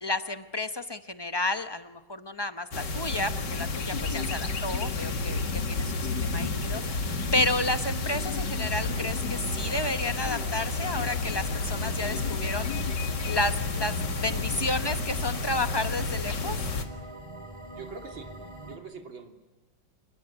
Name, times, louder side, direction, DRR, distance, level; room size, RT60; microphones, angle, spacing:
voice 1, 0.0-7.1 7.3-13.0 13.2-16.6, left 2 dB, 40° left, 9 dB, 0.3 m, -31 dB
sound 1, 2.7-16.9, left 3 dB, 60° left, 2.6 m, -30 dB
sound 2, 8.8-18.8, right 1 dB, 15° right, 2.4 m, -44 dB
voice 2, 17.8-18.3 18.6-19.3, right 5 dB, 90° right, 4 dB, 3.6 m, -44 dB
28.0 x 20.5 x 10.0 m, 1.0 s
omnidirectional pair, 2.1 m